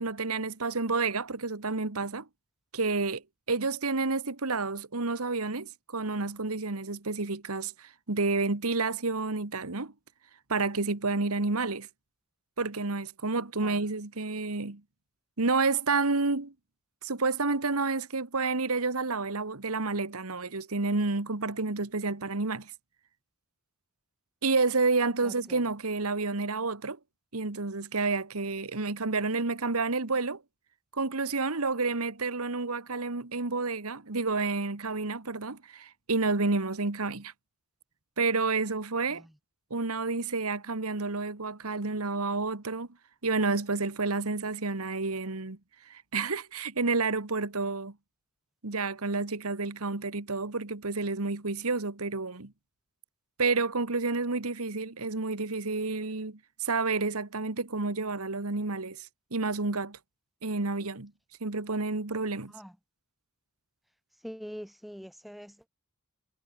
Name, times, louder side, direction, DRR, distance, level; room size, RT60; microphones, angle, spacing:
voice 1, 0.0-2.3 2.7-3.2 3.5-9.9 10.5-11.9 12.6-14.8 15.4-16.5 17.0-22.7 24.4-27.0 27.3-30.4 30.9-37.3 38.2-39.2 39.7-42.9 43.2-45.6 45.9-47.9 48.6-52.5 53.4-60.0 60.4-61.1 61.4-62.5, right 3 dB, 85° right, 1.7 m, -30 dB
voice 2, 25.2-25.6 39.1-39.3 62.5-62.7 64.2-65.7, equal, ahead, 0.6 m, -44 dB
head